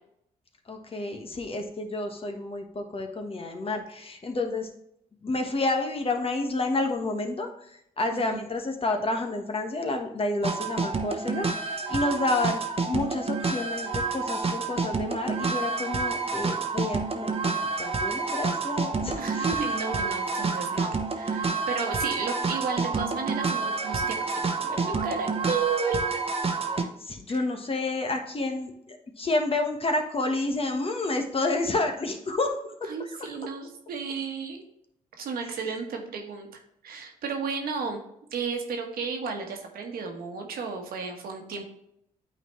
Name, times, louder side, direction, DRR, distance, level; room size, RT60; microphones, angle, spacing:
voice 1, 0.7-4.7 5.2-7.5 8.0-17.3 17.8-19.6 27.0-32.5 32.8-32.9 33.2-33.3, left 2 dB, 35° left, 4 dB, 1.2 m, -29 dB
voice 2, 8.1-8.5 19.2-26.2 27.3-27.4 32.8-34.6 35.2-36.5 36.8-38.0 38.3-41.7, right 5 dB, 75° right, 3 dB, 1.3 m, -33 dB
sound 1, 10.4-26.8, right 4 dB, 40° right, 1.0 m, -29 dB
8.8 x 4.1 x 3.1 m, 0.74 s
supercardioid pair, 55°, 16 cm